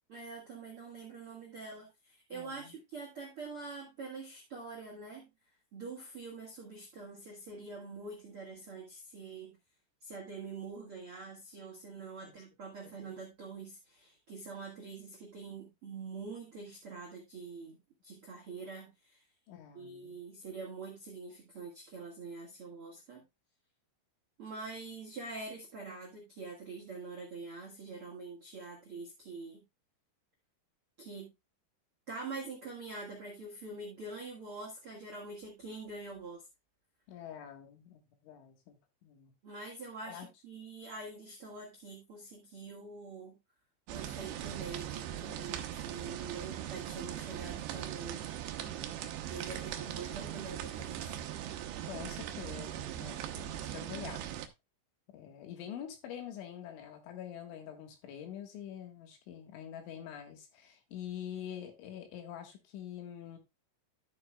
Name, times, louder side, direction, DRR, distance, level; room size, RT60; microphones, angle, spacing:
voice 1, 0.1-5.3 5.7-9.6 10.0-19.2 19.7-23.2 24.4-29.6 31.0-31.3 32.1-36.5 39.4-43.4 43.9-48.3 49.3-51.2, right 4 dB, 60° right, 1.5 m, -45 dB
voice 2, 2.3-2.7 12.2-12.3 12.8-13.1 19.5-20.2 37.1-39.3 40.0-40.3 46.3-46.5 51.8-54.3 55.1-63.4, left 9 dB, 75° left, 3.9 m, -46 dB
sound 1, 43.9-54.5, right 11 dB, 80° right, 2.6 m, -40 dB
13.0 x 7.1 x 2.3 m
omnidirectional pair, 5.6 m